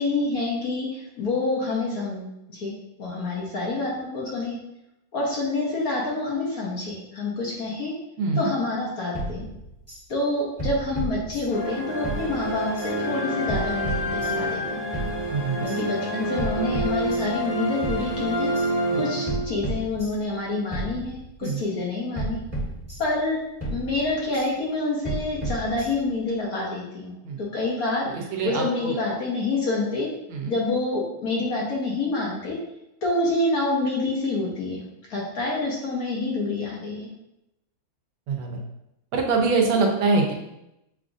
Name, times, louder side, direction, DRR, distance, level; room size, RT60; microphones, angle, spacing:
voice 1, 0.0-2.7 3.0-4.6 5.1-7.9 8.3-9.4 10.1-14.8 15.6-18.5 19.0-22.4 23.0-23.4 23.7-27.1 27.4-30.1 30.5-32.6 33.0-34.8 35.1-37.1, left 2 dB, 60° left, -3 dB, 1.1 m, -27 dB
voice 2, 8.2-8.5 15.3-15.6 21.4-21.6 27.2-27.4 28.1-28.9 30.3-30.5 38.3-38.6 39.1-40.3, right 4 dB, 85° right, 1 dB, 1.6 m, -24 dB
sound 1, 9.1-10.0 10.6-11.7 12.0-12.9 13.5-14.6 14.9-15.8 16.4-17.5 17.8-18.7 19.3-20.4 20.7-21.6 22.2-23.3 23.6-24.5 25.0-26.2, right 1 dB, 10° left, 1.0 m, -33 dB
sound 2, 11.5-19.8, equal, 40° left, 0.5 m, -28 dB
6.7 x 2.4 x 2.5 m, 0.85 s
omnidirectional pair, 2.2 m